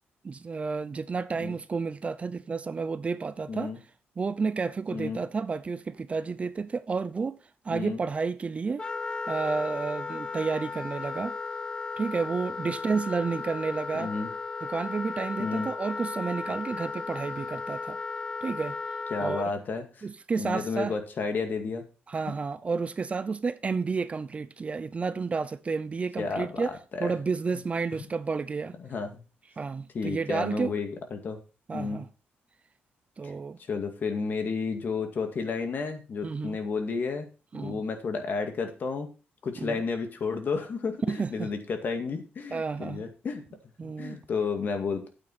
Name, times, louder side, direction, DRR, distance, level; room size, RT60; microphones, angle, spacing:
voice 1, 0.2-3.7 4.2-7.4 7.6-8.8 9.3-11.3 12.0-14.1 14.7-18.0 18.4-18.8 19.2-19.4 20.0-20.9 22.1-26.7 27.0-28.7 29.6-30.7 31.7-32.1 33.2-33.6 36.2-36.6 37.5-37.8 39.6-39.8 41.1-41.5 42.5-43.0 43.8-44.2, right 4 dB, 30° right, 0.6 m, -31 dB
voice 2, 3.5-3.8 4.9-5.2 7.7-8.0 13.9-14.3 15.4-15.7 19.1-20.1 20.4-21.9 26.2-27.1 27.9-28.0 28.8-29.2 29.9-31.4 31.7-32.0 33.7-37.3 37.6-39.1 39.4-43.4 43.8-45.1, left 4 dB, 50° left, 2.1 m, -32 dB
Wind instrument woodwind instrument, 8.8-19.5, left 4 dB, 20° left, 0.4 m, -35 dB
9.2 x 8.7 x 4.2 m
cardioid pair, 120°, 4 cm